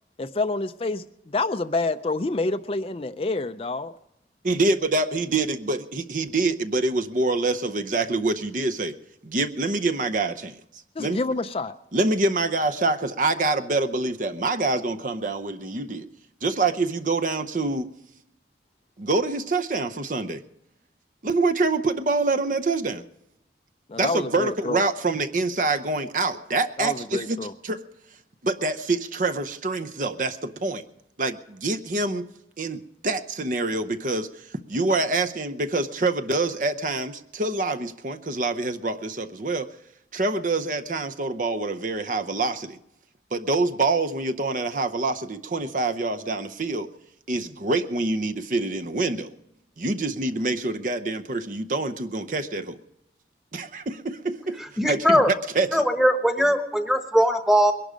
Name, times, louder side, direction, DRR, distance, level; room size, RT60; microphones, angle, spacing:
voice 1, 0.2-3.9 11.0-11.7 23.9-24.8 26.8-27.5, left 3 dB, 30° left, 0.4 m, -28 dB
voice 2, 4.4-9.0 9.2-10.6 11.0-11.2 11.9-16.1 16.4-17.9 19.0-20.4 21.2-23.0 24.0-27.4 27.6-27.8 28.4-30.8 31.2-32.3 32.6-39.7 40.1-42.8 43.3-46.9 47.3-49.3 49.8-52.8 53.5-54.6 54.9-55.8, right 3 dB, 45° right, 0.7 m, -26 dB
voice 3, 54.8-55.3 55.7-57.7, equal, ahead, 1.1 m, -20 dB
21.5 x 11.5 x 5.1 m
head